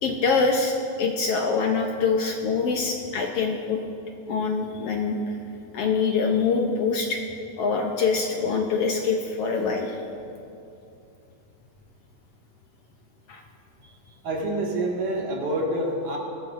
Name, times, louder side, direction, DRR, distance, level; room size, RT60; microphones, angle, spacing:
voice 1, 0.0-3.8 4.3-5.2 5.7-7.2 7.6-10.0 13.3-13.4, left 4 dB, 70° left, 2 dB, 1.5 m, -24 dB
voice 2, 14.2-16.2, right 1 dB, 85° right, -2 dB, 3.4 m, -27 dB
21.5 x 14.0 x 2.5 m, 2.7 s
omnidirectional pair, 3.4 m